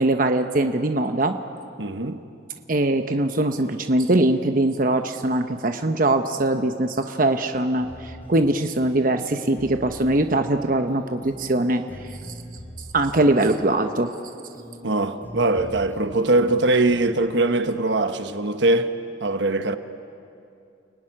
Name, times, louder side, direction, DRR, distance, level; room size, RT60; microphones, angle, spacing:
voice 1, 0.0-1.3 2.7-11.8 12.9-14.1, right 2 dB, 45° right, 0.9 m, -22 dB
voice 2, 1.8-2.2 14.8-18.9 19.2-19.8, right 2 dB, 75° right, 1.2 m, -21 dB
sound 1, 7.8-8.5 9.2-10.5 10.9-13.5 14.5-14.9 15.2-16.5 16.9-17.2, equal, 10° left, 4.0 m, -40 dB
29.5 x 19.5 x 10.0 m
head